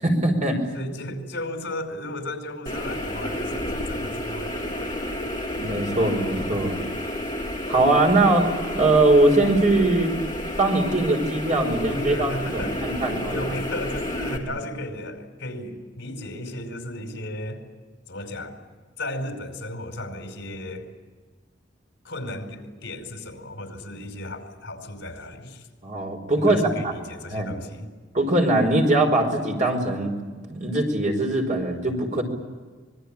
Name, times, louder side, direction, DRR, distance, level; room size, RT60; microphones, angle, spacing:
voice 1, 0.0-0.6 5.6-6.8 7.7-8.5 8.7-10.1 10.6-13.5 25.8-26.9 27.3-27.5 28.1-30.1 30.5-32.2, right 2 dB, 40° right, 3 dB, 5.2 m, -21 dB
voice 2, 0.7-5.3 11.9-12.9 13.3-17.7 18.1-18.6 19.0-20.9 22.0-25.7 26.4-27.9, left 1 dB, 70° left, 6 dB, 4.9 m, -35 dB
sound 1, 2.7-14.4, left 1 dB, 25° left, 3.6 m, -30 dB
25.5 x 21.5 x 8.9 m, 1.4 s
head